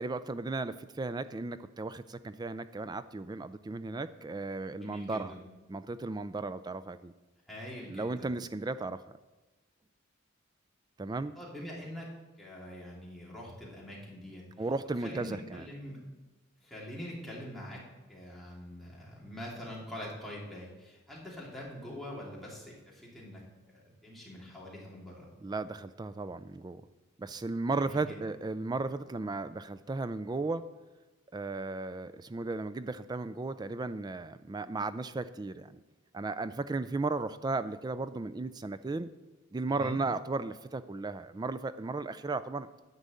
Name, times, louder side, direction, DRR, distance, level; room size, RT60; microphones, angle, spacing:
voice 1, 0.0-5.3 5.7-7.1 7.9-9.0 11.0-11.3 14.6-15.7 25.4-26.8 27.2-30.6 31.3-35.8 36.1-39.1 39.5-42.7, right 3 dB, 20° right, 13 dB, 0.3 m, -35 dB
voice 2, 4.8-5.4 7.5-8.3 11.3-12.1 12.4-14.4 15.0-16.0 16.6-17.8 18.1-23.4 23.7-25.3 27.6-28.2 39.7-40.0, equal, ahead, -6 dB, 2.8 m, -44 dB
10.0 x 5.3 x 8.3 m, 1.2 s
head